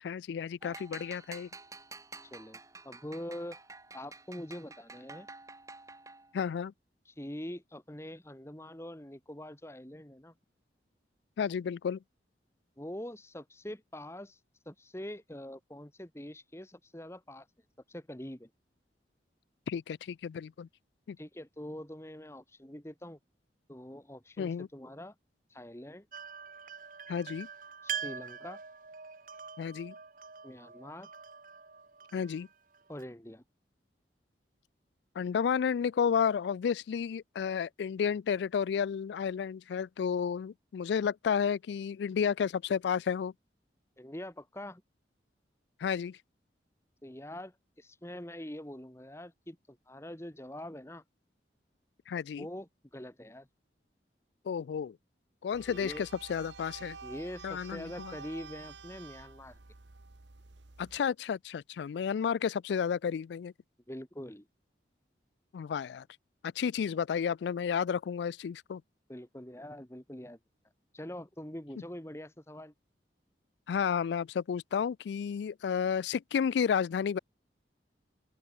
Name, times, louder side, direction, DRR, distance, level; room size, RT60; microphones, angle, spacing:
voice 1, 0.0-1.5 6.3-6.7 11.4-12.0 19.7-20.7 21.1-21.2 24.4-24.7 27.1-27.5 29.6-29.9 32.1-32.5 35.2-43.3 45.8-46.2 52.1-52.5 54.5-55.0 55.4-57.0 57.4-58.1 60.8-63.5 65.5-66.0 66.4-68.8 73.7-77.2, left 7 dB, 75° left, 0.3 m, -32 dB
sound 1, 0.6-6.4, right 3 dB, 20° right, 4.1 m, -50 dB
voice 2, 2.2-2.6 2.8-3.6 3.9-5.3 7.1-10.3 12.8-14.4 14.7-17.5 17.9-18.5 21.2-23.2 23.7-25.1 25.5-26.1 27.8-28.6 30.4-31.1 32.9-33.4 44.0-44.8 47.0-51.0 52.4-53.5 55.7-56.1 57.0-59.6 63.9-64.5 69.1-70.4 70.9-72.7, left 1 dB, 15° left, 1.6 m, -44 dB
sound 2, 26.1-33.0, right 7 dB, 50° right, 1.4 m, -44 dB
sound 3, 55.5-61.0, right 4 dB, 90° right, 1.3 m, -49 dB
open air
head